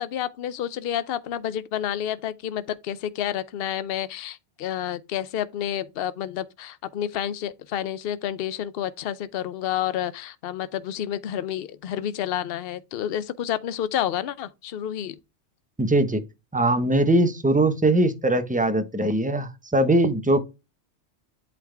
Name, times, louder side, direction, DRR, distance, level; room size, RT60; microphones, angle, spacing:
voice 1, 0.0-15.2, left 10 dB, 60° left, 0.8 m, -29 dB
voice 2, 15.8-16.2 16.5-20.4, right 1 dB, 10° right, 0.9 m, -21 dB
8.4 x 4.1 x 3.4 m
omnidirectional pair, 1.2 m